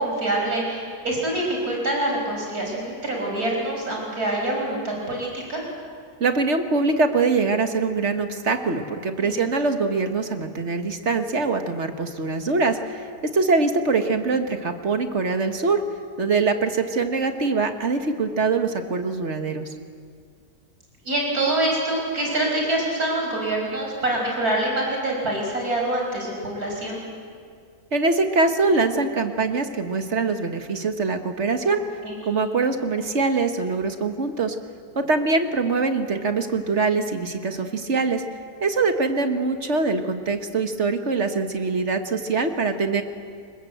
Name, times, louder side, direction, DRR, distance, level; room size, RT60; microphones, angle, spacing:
voice 1, 0.0-5.6 9.2-9.4 21.1-27.0 32.0-32.3, right 1 dB, 80° right, 0 dB, 6.0 m, -25 dB
voice 2, 6.2-13.1 13.3-15.8 16.2-19.7 27.9-31.8 32.3-34.6 35.0-38.2 38.6-43.0, right 4 dB, 50° right, 7 dB, 1.7 m, -23 dB
27.0 x 21.0 x 8.0 m, 2.2 s
omnidirectional pair, 1.6 m